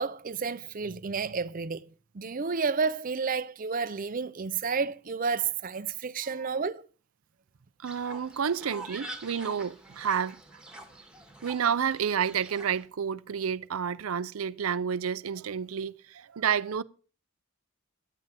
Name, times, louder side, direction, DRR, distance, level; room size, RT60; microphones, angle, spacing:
voice 1, 0.0-1.8 2.1-6.8, right 5 dB, 40° right, 0.5 m, -31 dB
Fowl, 7.8-12.8, right 2 dB, 5° right, 1.6 m, -45 dB
voice 2, 7.8-10.4 11.4-16.8, right 7 dB, 90° right, 0.5 m, -30 dB
12.0 x 5.7 x 8.9 m
head